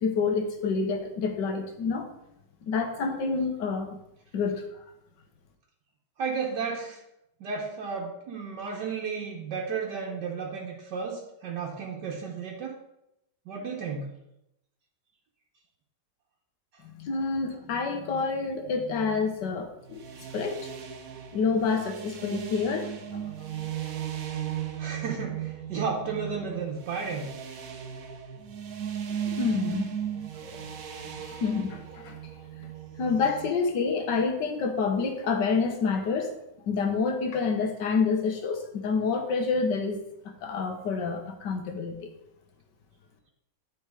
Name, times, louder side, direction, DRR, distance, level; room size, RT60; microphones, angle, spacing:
voice 1, 0.0-2.1 2.7-4.0 4.3-4.6 17.0-20.0 20.3-20.7 21.3-23.2 29.2-29.9 30.4-30.6 31.1-32.2 33.0-36.3 36.7-40.0 40.4-41.9, left 5 dB, 80° left, 5 dB, 1.7 m, -28 dB
voice 2, 6.2-7.0 7.4-12.8 13.5-14.1 16.7-16.8 24.8-27.3, right 5 dB, 75° right, -2 dB, 1.6 m, -33 dB
sound 1, 19.8-33.5, right 9 dB, 60° right, 1.1 m, -37 dB
9.6 x 4.4 x 4.8 m, 0.82 s
omnidirectional pair, 1.9 m